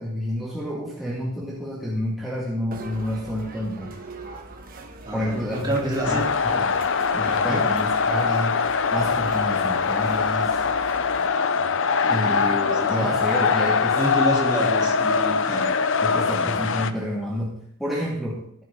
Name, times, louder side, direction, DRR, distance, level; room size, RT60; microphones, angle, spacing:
voice 1, 0.0-3.9 5.1-6.8 7.1-8.6 8.9-10.6 12.1-14.0 14.5-14.7 16.0-18.6, equal, ahead, -6 dB, 1.9 m, -29 dB
sound 1, 2.7-11.3, right 2 dB, 40° right, 1.4 m, -41 dB
voice 2, 5.0-6.3 7.5-7.7 12.1-12.5 12.8-13.1 13.9-15.7 16.3-16.9, right 1 dB, 20° right, -2 dB, 3.1 m, -28 dB
sound 2, 6.0-16.9, left 5 dB, 55° left, 0.7 m, -22 dB
14.5 x 11.5 x 3.8 m, 0.70 s
head